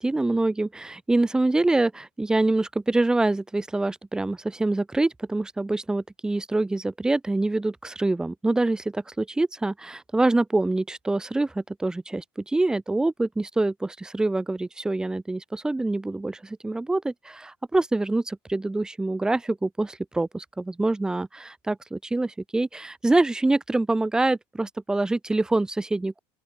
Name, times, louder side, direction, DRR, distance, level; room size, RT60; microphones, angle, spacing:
voice 1, 0.0-26.2, right 2 dB, 5° right, 0.8 m, -25 dB
open air
cardioid pair, 160°, 11 cm